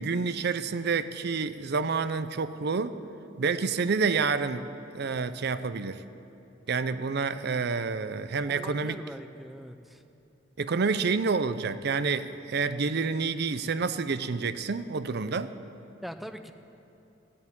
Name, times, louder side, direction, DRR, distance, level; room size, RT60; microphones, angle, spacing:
voice 1, 0.0-3.0 3.4-4.7 4.9-6.0 6.7-9.0 10.6-15.5, right 4 dB, 60° right, 12 dB, 0.6 m, -28 dB
voice 2, 8.5-10.0 16.0-16.5, equal, ahead, 8 dB, 0.5 m, -42 dB
15.5 x 8.6 x 9.9 m, 2.9 s
head